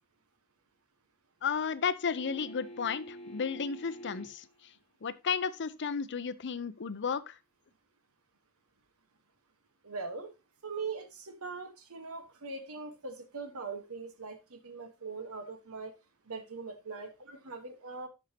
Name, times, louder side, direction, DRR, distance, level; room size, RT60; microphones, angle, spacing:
voice 1, 1.4-4.7 5.0-7.4, left 6 dB, 55° left, 0.6 m, -33 dB
sound 1, 2.2-4.5 7.1-7.2, equal, 30° left, 1.1 m, -47 dB
voice 2, 9.8-10.3 10.6-15.9 16.3-18.1, right 4 dB, 75° right, 1.3 m, -41 dB
12.5 x 5.5 x 2.8 m
head